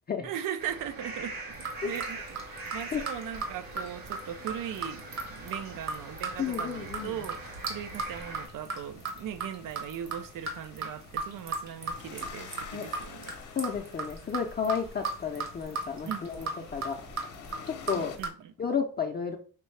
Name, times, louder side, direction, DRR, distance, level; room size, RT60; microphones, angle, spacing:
voice 1, 0.2-1.6 1.8-13.4 16.0-16.7 17.9-18.5, right 10 dB, 70° right, 0.6 m, -39 dB
sound 1, 0.6-8.5, right 2 dB, 90° right, 1.5 m, -42 dB
sound 2, 1.5-18.3, right 4 dB, 50° right, 1.2 m, -37 dB
sound 3, 4.2-18.2, left 7 dB, 60° left, 0.8 m, -50 dB
voice 2, 6.4-7.1 12.7-12.8 13.6-17.0 17.8-18.1 18.6-19.4, left 6 dB, 30° left, 0.5 m, -32 dB
5.2 x 2.7 x 3.2 m
cardioid pair, 110°, 34 cm